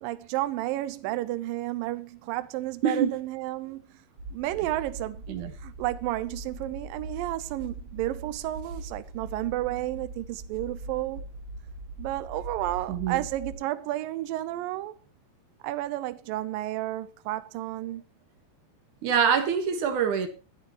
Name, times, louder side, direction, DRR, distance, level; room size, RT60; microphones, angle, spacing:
voice 1, 0.0-3.8 4.3-5.2 5.6-11.2 12.0-15.0 15.6-18.0, right 16 dB, 75° right, 2.2 m, -32 dB
voice 2, 2.8-3.2 5.3-5.5 12.9-13.2 19.0-20.3, right 7 dB, 60° right, 2.6 m, -25 dB
sound 1, 4.2-13.6, right 2 dB, 35° right, 6.9 m, -41 dB
23.0 x 9.1 x 3.0 m
omnidirectional pair, 4.8 m